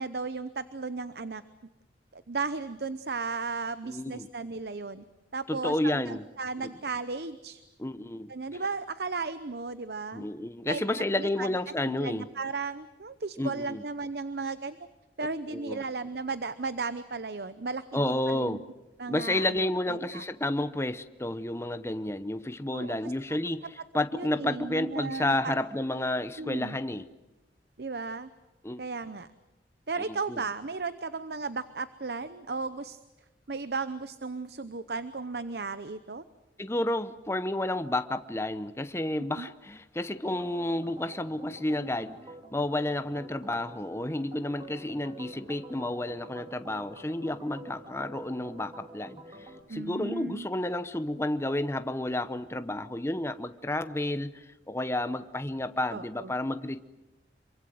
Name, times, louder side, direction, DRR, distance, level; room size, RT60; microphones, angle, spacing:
voice 1, 0.0-1.4 2.1-5.0 5.3-7.6 8.3-10.3 10.7-11.5 11.9-14.8 15.2-18.6 19.0-20.2 22.7-23.1 24.1-25.5 26.4-26.8 27.8-28.3 28.8-29.3 29.9-33.0 33.5-36.2 39.4-39.5 49.7-50.5 55.9-56.3, right 4 dB, 65° right, 13 dB, 0.8 m, -35 dB
voice 2, 3.9-4.3 5.5-6.2 6.6-6.7 7.8-8.3 10.1-12.3 13.4-13.8 15.5-15.8 17.9-18.6 19.1-27.0 28.6-28.8 30.0-30.4 36.6-42.2 42.5-56.8, left 1 dB, 15° left, 11 dB, 0.8 m, -31 dB
Organ, 40.2-49.6, right 2 dB, 25° right, 2.6 m, -48 dB
26.5 x 24.0 x 7.8 m, 1.0 s
head